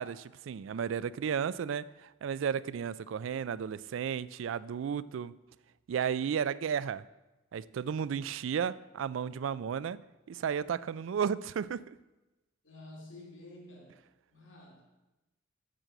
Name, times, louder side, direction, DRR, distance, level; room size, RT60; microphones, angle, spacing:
voice 1, 0.0-5.3 5.9-7.0 7.5-10.0 10.3-12.0, right 7 dB, 80° right, 18 dB, 0.3 m, -33 dB
voice 2, 12.6-14.0 14.3-14.8, left 1 dB, 85° left, -2 dB, 2.4 m, -50 dB
7.6 x 6.6 x 7.5 m, 1.1 s
head